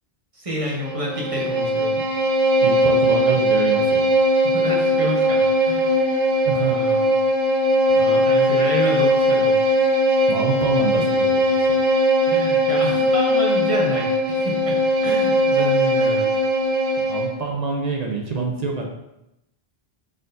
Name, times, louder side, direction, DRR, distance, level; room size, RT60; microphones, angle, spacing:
voice 1, 0.3-1.9 4.4-6.0 6.5-7.1 8.0-9.6 12.2-16.3, equal, 35° right, -3 dB, 0.9 m, -29 dB
Bowed string instrument, 0.8-17.4, equal, 75° right, 1.0 m, -19 dB
voice 2, 2.6-4.1 6.5-6.7 7.9-8.1 10.3-11.8 17.0-18.9, right 4 dB, 50° right, 0 dB, 0.6 m, -26 dB
4.4 x 3.8 x 2.5 m, 0.86 s
omnidirectional pair, 1.1 m